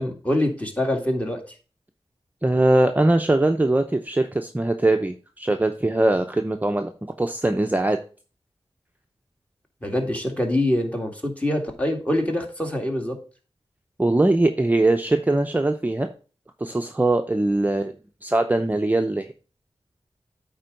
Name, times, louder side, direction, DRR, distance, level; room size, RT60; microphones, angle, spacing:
voice 1, 0.0-1.4 9.8-13.2, left 1 dB, 15° left, 2 dB, 2.1 m, -24 dB
voice 2, 2.4-6.9 7.2-8.0 14.0-16.1 16.6-17.9 18.2-19.3, right 2 dB, 15° right, 5 dB, 0.6 m, -21 dB
8.8 x 3.8 x 5.3 m, 0.36 s
wide cardioid pair, 55°, 10 cm